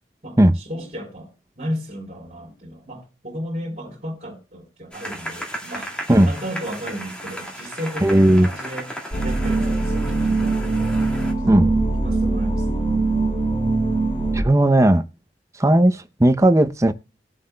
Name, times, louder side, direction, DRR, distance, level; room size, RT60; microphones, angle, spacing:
voice 1, 0.2-6.0 6.2-8.9 9.2-11.0 11.4-12.9, equal, 40° right, 3.6 m, -34 dB
sound 1, 4.9-11.3, equal, 5° left, 2.3 m, -35 dB
voice 2, 8.0-8.5 11.5-11.7 14.3-15.0 15.6-16.9, right 1 dB, 15° right, 0.6 m, -15 dB
sound 2, 9.1-14.4, right 3 dB, 30° left, 2.5 m, -22 dB
19.5 x 7.7 x 2.2 m
head